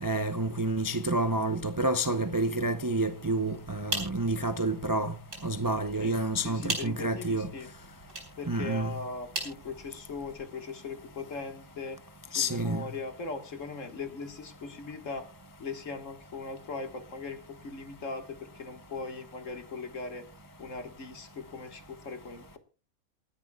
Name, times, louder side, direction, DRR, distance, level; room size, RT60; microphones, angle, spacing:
voice 1, 0.0-5.1 5.4-7.5 8.5-9.0 12.3-12.9, right 2 dB, 25° right, 0.5 m, -29 dB
sound 1, 3.6-10.4, right 1 dB, 65° right, 4.5 m, -41 dB
voice 2, 6.0-7.7 8.4-12.0 12.3-15.3 15.6-20.3 20.6-22.6, left 4 dB, 65° left, 2.0 m, -39 dB
27.0 x 10.5 x 2.3 m
omnidirectional pair, 1.5 m